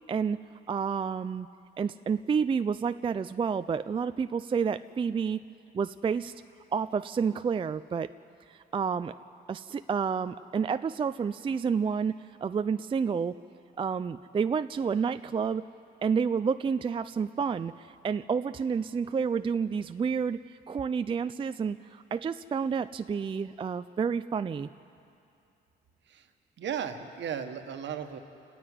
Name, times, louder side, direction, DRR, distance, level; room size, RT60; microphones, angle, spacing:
voice 1, 0.1-0.4 0.7-1.5 1.8-5.4 5.7-6.3 6.7-8.1 8.5-9.1 9.5-12.2 12.4-13.4 13.8-15.6 16.0-20.4 20.7-24.7, right 6 dB, 25° right, 11 dB, 0.4 m, -29 dB
voice 2, 26.6-28.2, right 8 dB, 65° right, 7 dB, 1.5 m, -35 dB
29.0 x 9.8 x 9.4 m, 2.6 s
cardioid pair, 90°, 20 cm